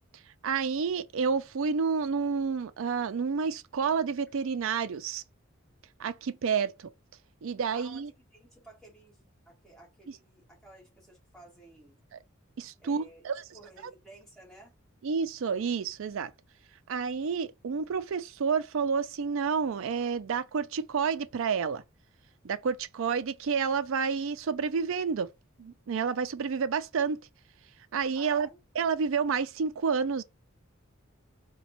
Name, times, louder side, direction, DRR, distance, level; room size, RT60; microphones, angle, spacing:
voice 1, 0.4-5.2 6.0-6.9 7.4-8.1 12.1-12.2 12.6-13.4 15.0-16.3 16.9-21.8 22.4-25.3 25.6-27.2 27.9-28.5 28.8-30.2, right 5 dB, 65° right, 0.4 m, -29 dB
voice 2, 7.7-8.0 8.3-12.0 12.8-14.8 28.2-28.6, right 1 dB, ahead, 1.8 m, -54 dB
4.1 x 2.2 x 2.9 m
head